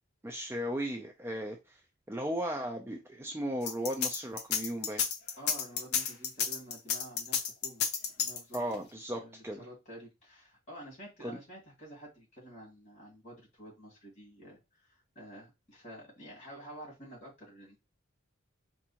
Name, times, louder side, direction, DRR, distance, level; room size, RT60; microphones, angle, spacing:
voice 1, 0.2-1.8 2.1-5.0 8.5-9.6 11.2-11.4, equal, 10° right, 2 dB, 0.4 m, -36 dB
sound 1, 3.6-8.7, left 7 dB, 50° left, 0.6 m, -31 dB
voice 2, 5.4-7.8 8.2-8.6 8.9-17.8, right 1 dB, 35° left, -4 dB, 2.6 m, -50 dB
4.6 x 2.6 x 2.8 m, 0.24 s
head